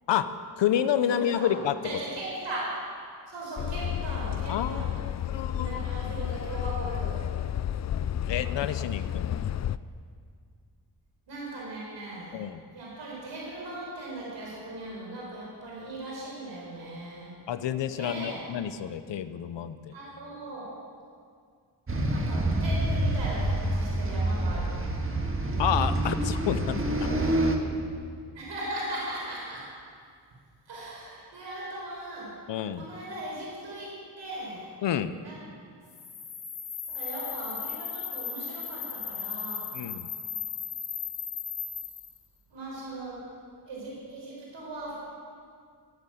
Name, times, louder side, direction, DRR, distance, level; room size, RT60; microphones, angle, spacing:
voice 1, 0.1-2.0 4.5-5.7 8.3-9.5 12.3-12.6 17.5-19.9 25.6-27.1 32.5-32.9 34.8-35.1 39.7-40.1, left 10 dB, 85° left, 12 dB, 0.8 m, -29 dB
voice 2, 1.1-1.6 1.8-2.9 3.3-5.0 5.5-7.3 11.3-12.4 12.7-17.3 17.9-18.4 19.9-20.8 21.9-24.9 27.2-27.3 27.6-27.7 28.3-29.7 30.7-32.5 32.8-34.7 35.2-35.4 36.9-39.7 42.5-43.2 43.7-45.0, right 1 dB, 85° right, -4 dB, 4.6 m, -38 dB
sound 1, 3.6-9.8, left 10 dB, 45° left, 0.4 m, -31 dB
sound 2, 21.9-27.6, right 1 dB, 30° right, 1.6 m, -27 dB
sound 3, 35.9-42.2, left 7 dB, 65° left, 3.3 m, -36 dB
16.0 x 9.9 x 7.8 m, 2.1 s
cardioid pair, 90°, 42 cm